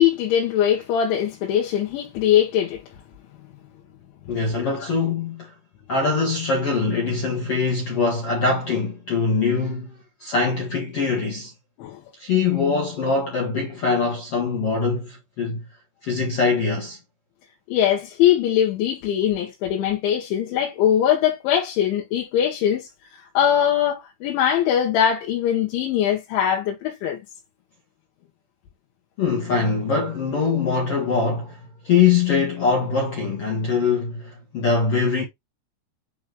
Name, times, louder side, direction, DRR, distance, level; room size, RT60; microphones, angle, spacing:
voice 1, 0.0-2.8 4.6-4.9 11.8-12.0 17.7-22.9 23.4-27.2, left 10 dB, 85° left, 3.7 m, -21 dB
voice 2, 4.3-5.5 5.9-11.5 12.2-15.7 16.0-17.0 29.2-31.6 31.8-35.2, left 4 dB, 65° left, 1.5 m, -23 dB
8.8 x 3.0 x 3.7 m
omnidirectional pair, 5.2 m